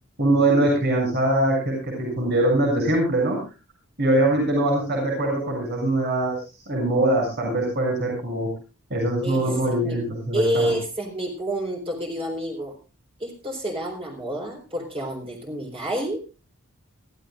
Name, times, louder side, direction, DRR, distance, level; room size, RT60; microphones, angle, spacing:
voice 1, 0.2-3.4 4.0-6.4 6.7-8.5 8.9-10.7, right 1 dB, 50° right, 0 dB, 7.2 m, -22 dB
voice 2, 9.2-10.0 10.3-12.7 13.2-16.2, right 1 dB, 25° right, 1 dB, 4.1 m, -28 dB
23.5 x 15.0 x 2.5 m, 0.31 s
head